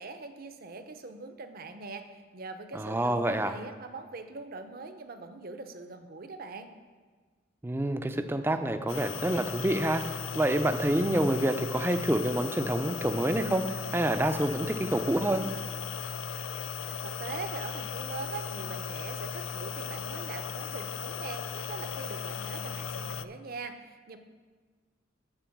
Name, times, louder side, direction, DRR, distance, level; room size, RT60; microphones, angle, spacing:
voice 1, 0.0-2.1 2.3-6.7 16.9-24.2, right 3 dB, 50° right, 8 dB, 0.6 m, -42 dB
voice 2, 2.7-3.5 7.6-10.0 10.3-13.6 13.9-15.4, right 1 dB, 10° right, 8 dB, 0.4 m, -27 dB
sound 1, 8.9-23.2, left 7 dB, 70° left, 0.3 m, -37 dB
8.9 x 4.4 x 7.1 m, 1.4 s
head